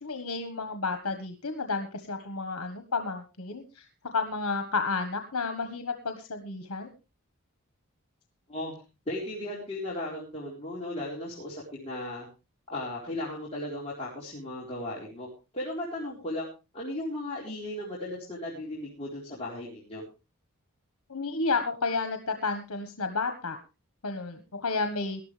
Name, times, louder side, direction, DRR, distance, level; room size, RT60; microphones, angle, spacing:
voice 1, 0.0-3.8 4.1-6.9 21.1-23.6 24.0-25.2, left 4 dB, 85° left, 7 dB, 1.5 m, -31 dB
voice 2, 9.1-12.3 12.7-15.3 15.5-16.5 16.7-20.0, left 1 dB, 30° left, -6 dB, 4.1 m, -36 dB
19.0 x 12.0 x 3.4 m, 0.30 s
head